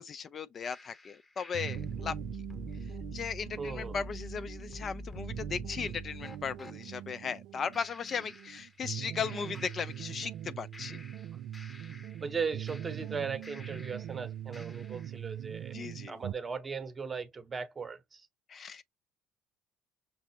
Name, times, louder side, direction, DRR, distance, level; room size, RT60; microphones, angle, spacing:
voice 1, 0.0-2.2 3.1-11.0 15.7-16.2 18.5-18.8, left 6 dB, 40° left, 0.4 m, -37 dB
sound 1, 0.6-6.8 7.7-9.0 9.2-10.4 10.7-14.2 14.5-15.2, left 1 dB, 20° left, 0.9 m, -47 dB
sound 2, 1.5-16.3, right 11 dB, 60° right, 0.3 m, -42 dB
voice 2, 3.6-4.0 12.2-15.8 16.1-18.3, right 5 dB, 30° right, 0.9 m, -38 dB
5.9 x 2.0 x 2.8 m
hypercardioid pair, 60°, 0 cm